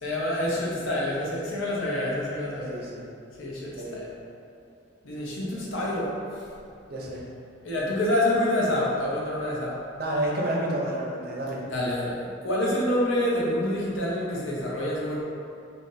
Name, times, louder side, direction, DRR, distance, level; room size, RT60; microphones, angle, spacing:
voice 1, 0.0-2.8 3.4-4.1 5.0-6.1 7.6-9.8 11.7-15.2, left 1 dB, 80° left, -5 dB, 0.7 m, -27 dB
voice 2, 2.7-3.1 3.7-4.0 5.5-5.6 6.9-7.2 10.0-11.7, right 1 dB, 50° right, -3 dB, 0.5 m, -30 dB
2.6 x 2.5 x 3.8 m, 2.5 s
head